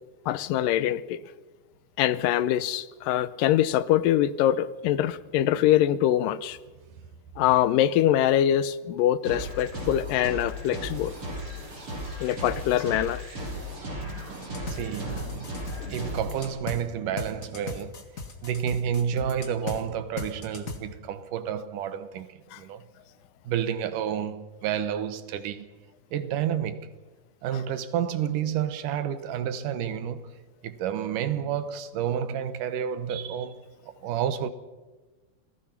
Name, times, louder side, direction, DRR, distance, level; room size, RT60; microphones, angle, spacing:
voice 1, 0.3-1.2 2.0-6.6 7.4-11.1 12.2-13.2 22.5-22.6, left 12 dB, 90° left, 2.5 m, -24 dB
sound 1, 9.2-16.5, equal, 40° right, 7.9 m, -36 dB
voice 2, 13.6-15.6 15.9-18.1 18.4-22.8 23.5-25.7 26.1-26.9 27.4-30.3 30.6-33.6 34.0-34.5, right 9 dB, 75° right, 2.6 m, -30 dB
sound 2, 14.4-16.8 17.2-19.8 20.2-20.8, left 4 dB, 30° left, 1.7 m, -37 dB
27.5 x 18.5 x 5.9 m
omnidirectional pair, 3.8 m